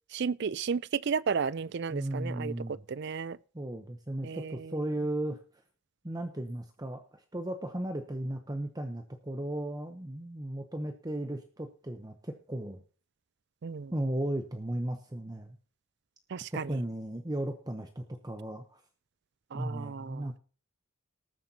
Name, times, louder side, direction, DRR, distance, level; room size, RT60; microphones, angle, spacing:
voice 1, 0.1-2.5 2.9-3.4 4.2-4.6 13.6-13.9 16.3-16.8 19.5-20.3, right 6 dB, 50° right, 0.4 m, -33 dB
voice 2, 1.9-2.8 3.5-5.4 6.0-12.8 13.9-15.5 16.5-18.8 19.5-20.4, right 1 dB, 20° right, 0.8 m, -35 dB
19.0 x 9.5 x 2.9 m
head